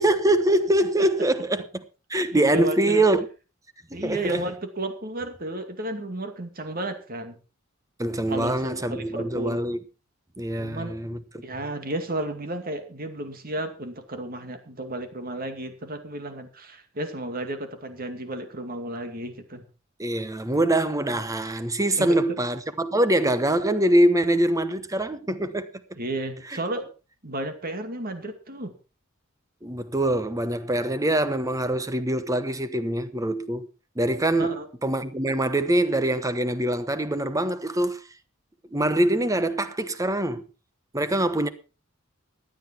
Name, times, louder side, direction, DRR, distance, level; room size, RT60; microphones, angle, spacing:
voice 1, 0.0-1.8 2.1-3.2 4.0-4.4 8.0-9.8 10.4-11.2 20.0-25.7 29.6-33.7 34.0-38.0 38.7-40.4 40.9-41.5, right 1 dB, 15° right, 1.0 m, -24 dB
voice 2, 2.3-3.0 3.9-7.4 8.3-9.6 10.6-11.0 11.4-19.6 22.0-22.2 26.0-26.9 27.2-28.7 34.4-34.7, right 1 dB, 45° right, 2.3 m, -33 dB
16.0 x 11.0 x 4.4 m
head